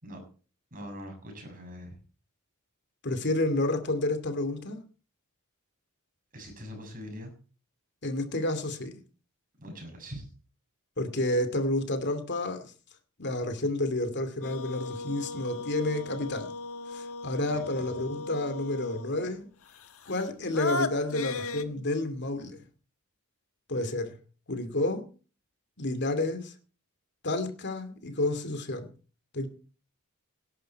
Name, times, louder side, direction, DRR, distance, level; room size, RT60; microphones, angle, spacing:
voice 1, 0.7-2.0 6.3-7.3 9.6-10.3 17.5-17.9, equal, 40° right, 3 dB, 7.1 m, -42 dB
voice 2, 3.0-4.8 8.0-9.0 11.0-12.7 13.2-16.5 16.9-19.5 20.1-22.6 23.7-24.1 24.5-25.0 25.8-26.5 27.2-28.9 29.3-29.5, left 2 dB, 50° left, 9 dB, 2.5 m, -30 dB
sound 1, 14.4-19.3 19.8-21.6, left 3 dB, 65° left, 1.3 m, -36 dB
18.0 x 11.5 x 4.6 m, 0.37 s
head